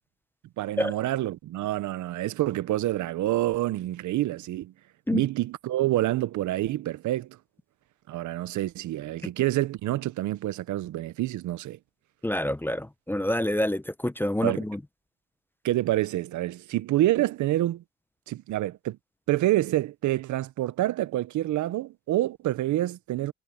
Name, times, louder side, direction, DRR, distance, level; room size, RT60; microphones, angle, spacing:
voice 1, 0.6-4.7 5.1-7.4 8.1-11.8 14.4-14.6 15.6-17.8 18.3-19.0 19.3-23.3, right 15 dB, 75° right, 0.7 m, -27 dB
voice 2, 12.2-14.8, left 1 dB, 5° left, 0.6 m, -27 dB
cardioid pair, 90°, 30 cm